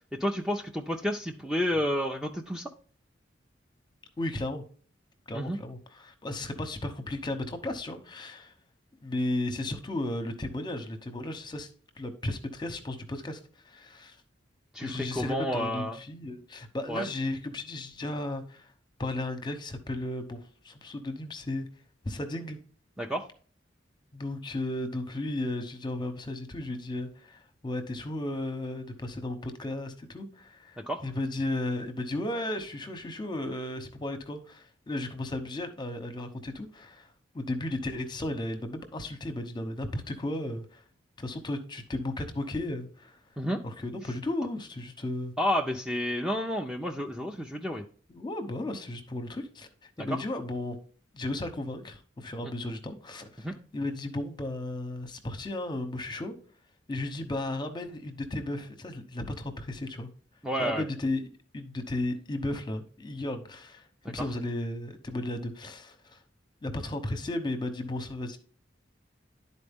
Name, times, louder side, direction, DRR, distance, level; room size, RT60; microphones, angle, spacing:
voice 1, 0.1-2.7 5.3-5.6 14.7-16.0 16.9-17.1 23.0-23.3 30.9-31.0 43.4-43.6 45.4-47.8 50.0-50.1 53.4-53.5 60.4-60.8 64.0-64.1, equal, 5° right, 0.5 m, -30 dB
voice 2, 4.2-4.6 5.3-8.5 9.0-11.7 12.0-14.2 14.8-18.7 19.0-21.7 22.0-22.6 24.1-40.8 41.2-43.2 43.6-45.3 48.1-50.8 51.1-53.5 53.7-56.3 56.9-60.1 60.6-61.2 61.5-66.2 66.6-68.4, left 1 dB, 25° left, 0.9 m, -34 dB
11.0 x 4.2 x 3.6 m
head